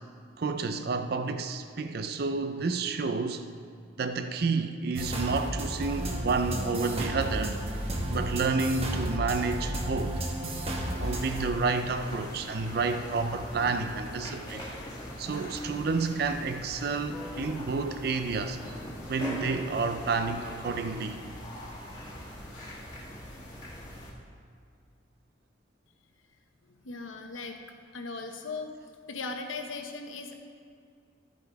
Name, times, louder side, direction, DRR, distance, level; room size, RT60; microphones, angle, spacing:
voice 1, 0.4-3.5 4.0-7.6 8.1-10.2 11.0-14.6 15.2-18.6 19.1-21.3, right 4 dB, 50° right, 8 dB, 0.4 m, -30 dB
sound 1, 5.0-11.5, right 1 dB, 30° right, 1.0 m, -32 dB
sound 2, 11.0-24.1, left 1 dB, 20° left, 1.6 m, -42 dB
Guitar, 17.1-22.0, left 1 dB, 5° left, 0.8 m, -51 dB
voice 2, 26.7-27.6 27.9-28.7 29.1-30.4, left 3 dB, 90° left, 4 dB, 1.0 m, -38 dB
13.0 x 6.9 x 4.7 m, 2.3 s
head